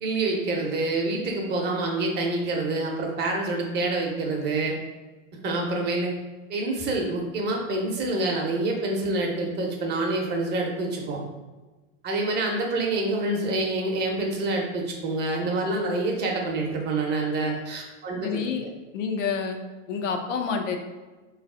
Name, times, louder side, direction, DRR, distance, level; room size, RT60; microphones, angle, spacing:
voice 1, 0.0-4.8 5.4-6.1 6.5-11.2 12.0-18.7, right 2 dB, 25° right, 0 dB, 0.8 m, -27 dB
voice 2, 18.2-18.6 18.9-19.6 19.9-20.8, left 6 dB, 65° left, 4 dB, 0.7 m, -28 dB
3.9 x 3.2 x 3.7 m, 1.2 s
hypercardioid pair, 130°, 39 cm